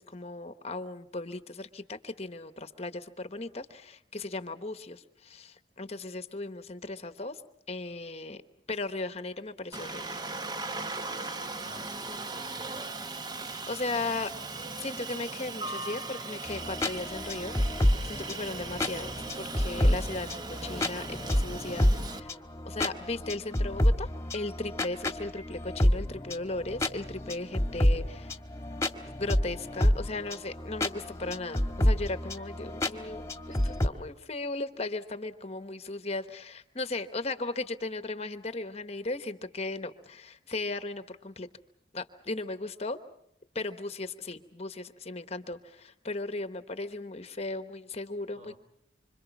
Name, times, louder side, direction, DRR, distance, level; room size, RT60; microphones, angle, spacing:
voice 1, 0.0-7.4 7.7-8.4 8.7-10.2 13.5-14.3 14.8-22.4 22.6-28.3 29.2-33.2 33.5-41.5 41.9-43.0 43.5-48.6, left 2 dB, 35° left, 10 dB, 1.0 m, -37 dB
Aircraft, 9.7-22.2, right 3 dB, 20° right, 0.9 m, -38 dB
voice 2, 11.6-12.9 48.3-48.6, equal, 40° right, 6 dB, 3.0 m, -51 dB
sound 1, 16.5-33.9, left 1 dB, 15° left, 1.5 m, -29 dB
26.5 x 26.0 x 6.0 m, 0.77 s
head